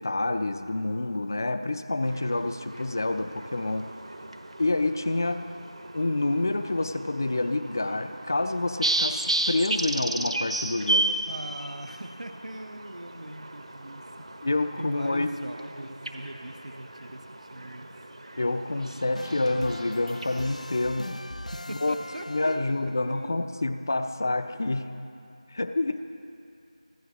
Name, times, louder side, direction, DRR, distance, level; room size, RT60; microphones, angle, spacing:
voice 1, 0.0-3.9 4.6-5.4 5.9-11.2 14.4-15.3 18.4-21.2 21.7-22.0 22.3-24.9 25.5-26.1, left 2 dB, 30° left, 10 dB, 0.5 m, -28 dB
sound 1, 2.0-21.0, right 2 dB, 60° right, 1.2 m, -34 dB
voice 2, 11.3-14.5 14.8-17.9 21.4-22.7 23.1-23.3, right 1 dB, 80° right, 6 dB, 0.9 m, -41 dB
sound 2, 19.1-23.0, left 1 dB, 90° left, 0.6 m, -41 dB
24.5 x 13.0 x 3.0 m, 2.5 s
figure-of-eight pair, 175°, 4 cm